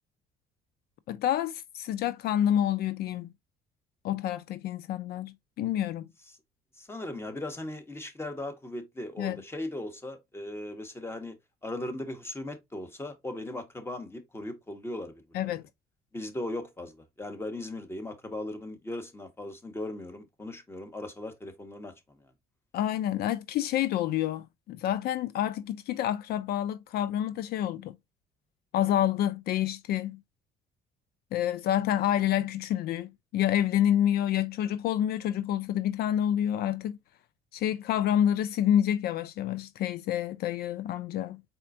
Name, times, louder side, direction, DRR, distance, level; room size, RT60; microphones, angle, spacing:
voice 1, 1.1-3.3 4.0-6.1 9.2-9.4 15.3-15.6 22.7-28.0 28.7-30.2 31.3-37.0 37.5-41.4, left 11 dB, 70° left, 0.4 m, -28 dB
voice 2, 6.8-11.3 11.6-15.5 16.1-21.9 22.2-22.3, left 1 dB, 15° left, 1.4 m, -38 dB
4.3 x 4.2 x 2.5 m
cardioid pair, 110°, 17 cm